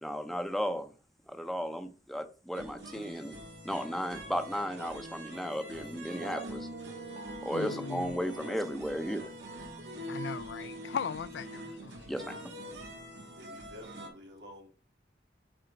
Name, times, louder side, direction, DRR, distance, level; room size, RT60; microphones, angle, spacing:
voice 1, 0.0-0.9 1.3-3.4 3.6-6.7 7.4-9.3 12.1-12.4, equal, ahead, 0.6 m, -35 dB
sound 1, 2.5-14.1, equal, 90° right, 2.2 m, -44 dB
sound 2, 6.2-13.8, right 3 dB, 50° right, 0.6 m, -48 dB
voice 2, 7.5-8.2 10.1-12.0, left 7 dB, 75° left, 0.4 m, -38 dB
voice 3, 13.4-14.7, left 1 dB, 75° right, 2.4 m, -50 dB
7.8 x 3.9 x 4.5 m
head